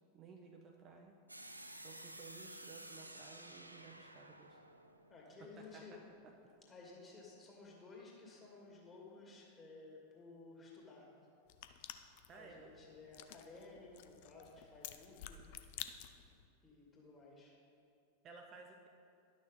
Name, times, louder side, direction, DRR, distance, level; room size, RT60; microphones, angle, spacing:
voice 1, 0.1-1.2 1.8-4.6 5.4-6.5 12.3-12.8 18.2-18.9, right 4 dB, 30° right, 2 dB, 0.7 m, -56 dB
sound 1, 1.3-6.1, right 1 dB, 85° right, 0.4 m, -53 dB
voice 2, 5.1-6.0 6.7-11.1 11.7-12.0 12.3-15.4 16.6-17.5, left 3 dB, 20° left, -3 dB, 2.2 m, -56 dB
sound 2, 11.5-16.5, left 11 dB, 50° left, 0.4 m, -52 dB
11.0 x 6.4 x 4.0 m, 2.6 s
figure-of-eight pair, 90°, 0 cm